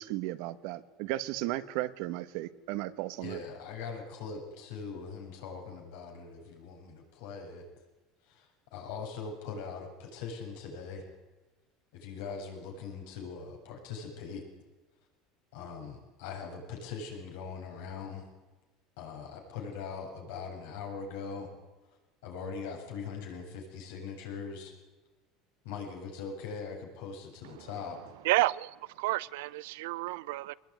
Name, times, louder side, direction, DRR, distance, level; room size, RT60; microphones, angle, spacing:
voice 1, 0.0-3.4, right 16 dB, 70° right, 1.3 m, -35 dB
voice 2, 3.2-7.6 8.3-11.0 11.9-14.4 15.5-18.2 19.0-21.5 22.2-24.7 25.6-28.0, left 5 dB, 85° left, 7.7 m, -41 dB
voice 3, 28.2-30.5, right 19 dB, 90° right, 0.7 m, -31 dB
23.0 x 20.0 x 9.7 m
cardioid pair, 145°, 0 cm